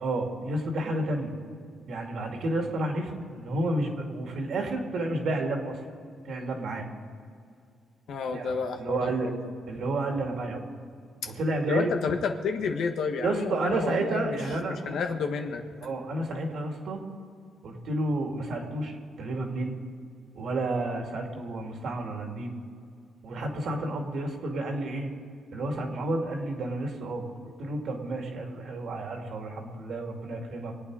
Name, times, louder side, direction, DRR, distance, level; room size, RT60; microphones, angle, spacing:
voice 1, 0.0-1.3 1.9-5.8 6.2-6.9 8.3-9.3 9.7-10.6 11.4-11.9 13.2-15.0 15.8-17.0 17.6-19.8 20.3-22.5 23.2-25.1 25.5-27.2 27.6-30.7, right 2 dB, 65° right, 2 dB, 2.4 m, -31 dB
voice 2, 8.1-9.4 11.2-11.3 11.7-14.4 14.7-15.7, left 5 dB, 70° left, 5 dB, 1.4 m, -30 dB
24.5 x 8.8 x 4.9 m, 2.3 s
cardioid pair, 90°, 0 cm